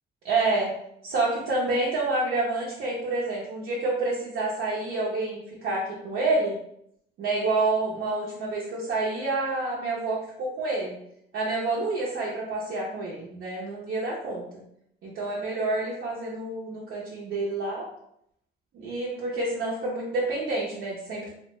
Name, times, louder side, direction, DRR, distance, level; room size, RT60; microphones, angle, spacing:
voice 1, 0.2-0.7 1.0-6.6 7.2-11.0 11.3-14.5 15.0-17.9 18.7-21.3, right 2 dB, 80° right, -5 dB, 0.6 m, -28 dB
2.6 x 2.1 x 3.0 m, 0.74 s
cardioid pair, 90°, 20 cm